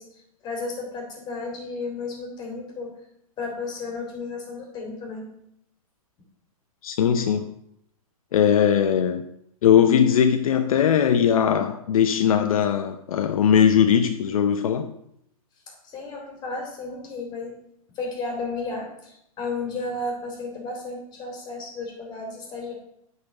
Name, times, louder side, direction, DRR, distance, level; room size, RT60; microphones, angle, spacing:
voice 1, 0.0-2.9 3.4-5.3 15.7-17.5 17.9-22.7, left 3 dB, 25° left, 2.6 m, -33 dB
voice 2, 6.8-7.5 8.3-9.2 9.6-14.9, left 8 dB, 70° left, 0.6 m, -20 dB
8.7 x 4.3 x 5.8 m
hypercardioid pair, 135°, 19 cm